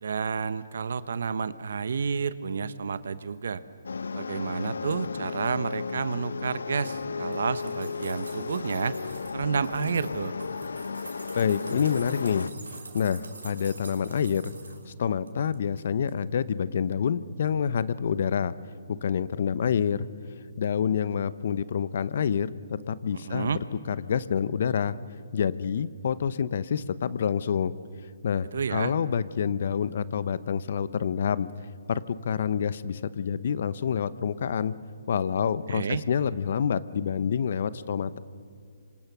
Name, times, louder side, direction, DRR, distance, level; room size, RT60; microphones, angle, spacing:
voice 1, 0.0-3.6 4.1-9.0 9.3-10.3 23.1-23.6 28.5-28.9 35.7-36.0, right 5 dB, 65° right, 15 dB, 1.1 m, -30 dB
sound 1, 3.8-12.5, left 5 dB, 75° left, 0.6 m, -34 dB
sound 2, 7.2-9.3 9.6-14.8 15.3-15.8 16.1-16.2, right 4 dB, 85° right, 4.7 m, -46 dB
voice 2, 11.4-14.5 14.9-18.5 18.9-20.1 20.6-23.6 23.9-25.0 25.3-27.7 28.2-31.5 31.9-34.7 35.1-38.2, left 7 dB, 55° left, 16 dB, 0.9 m, -27 dB
26.5 x 25.5 x 6.1 m, 2.3 s
hypercardioid pair, 145°, 0 cm